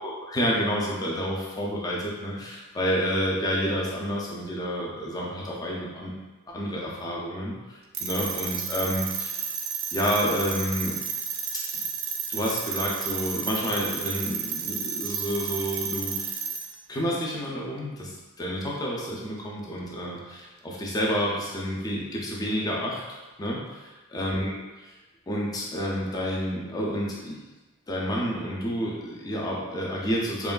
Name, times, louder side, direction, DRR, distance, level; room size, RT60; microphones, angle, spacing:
voice 1, 0.2-6.1 6.5-9.5 9.9-11.0 11.7-11.8 12.3-16.3 16.9-23.0 23.4-23.8 24.1-24.9 25.3-27.4 27.9-30.5, equal, 15° left, -3 dB, 0.4 m, -29 dB
sound 1, 7.9-16.7, right 7 dB, 60° right, 0.3 m, -32 dB
3.0 x 2.3 x 2.2 m, 1.2 s
head